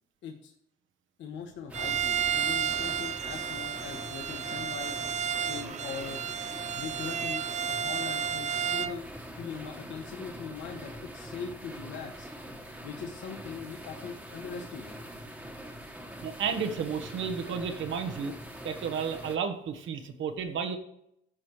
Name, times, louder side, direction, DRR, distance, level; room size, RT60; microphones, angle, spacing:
voice 1, 0.2-0.5 1.2-4.9 5.5-6.2 6.7-9.1 9.4-12.3 12.8-14.9, left 6 dB, 70° left, 3 dB, 1.1 m, -41 dB
sound 1, 1.7-19.4, equal, 5° right, 1.4 m, -44 dB
Bowed string instrument, 1.7-9.0, right 8 dB, 35° right, 0.4 m, -32 dB
voice 2, 16.2-18.3 18.6-20.8, right 6 dB, 75° right, 7 dB, 1.2 m, -32 dB
14.5 x 4.9 x 3.2 m, 0.75 s
cardioid pair, 90°, 20 cm